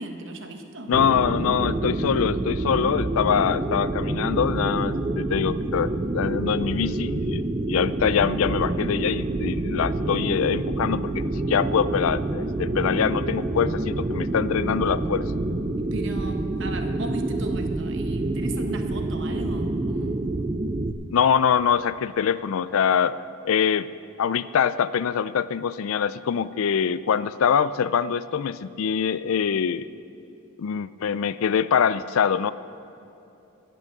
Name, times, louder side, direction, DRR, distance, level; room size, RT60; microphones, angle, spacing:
voice 1, 0.0-0.9 15.8-20.3, right 2 dB, 60° right, 5 dB, 1.1 m, -36 dB
voice 2, 0.9-7.4 7.7-15.3 21.1-23.1 23.4-23.9 24.2-29.9 30.6-32.5, left 7 dB, 75° left, 16 dB, 0.4 m, -24 dB
sound 1, 0.9-20.9, right 2 dB, 25° right, 0.4 m, -27 dB
17.5 x 6.1 x 6.7 m, 2.9 s
head